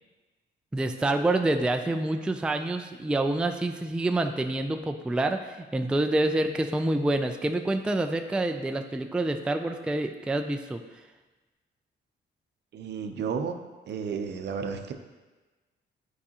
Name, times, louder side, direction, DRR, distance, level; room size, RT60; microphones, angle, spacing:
voice 1, 0.7-10.8, right 2 dB, 5° right, 6 dB, 0.3 m, -27 dB
voice 2, 12.7-13.6 13.9-14.9, right 6 dB, 60° right, 6 dB, 0.6 m, -32 dB
8.4 x 4.8 x 2.9 m, 1.2 s
cardioid pair, 90°, 20 cm